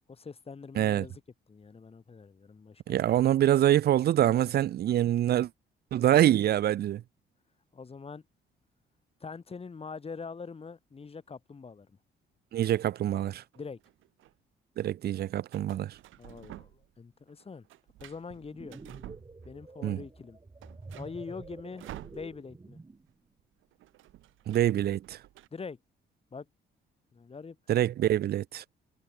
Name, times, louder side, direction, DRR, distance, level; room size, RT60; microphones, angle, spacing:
voice 1, 0.1-1.2 1.5-3.3 7.7-8.2 9.2-12.0 13.6-13.8 16.2-17.7 18.0-18.8 19.5-20.4 20.9-21.9 22.1-22.8 25.5-25.8 26.3-26.5 27.1-27.8, left 5 dB, 30° left, 2.0 m, -43 dB
voice 2, 0.8-1.1 2.9-5.5 5.9-7.0 12.5-13.4 14.8-16.0 19.8-20.0 24.5-25.2 27.7-28.6, right 12 dB, 55° right, 0.4 m, -25 dB
sound 1, 13.5-14.3 15.5-17.0 17.3-19.8 20.1-20.2 20.5-22.7 22.9-23.1 23.4-25.5, right 15 dB, 80° right, 0.9 m, -50 dB
sound 2, 18.4-23.1, right 3 dB, 20° right, 4.8 m, -48 dB
cardioid pair, 90°, 20 cm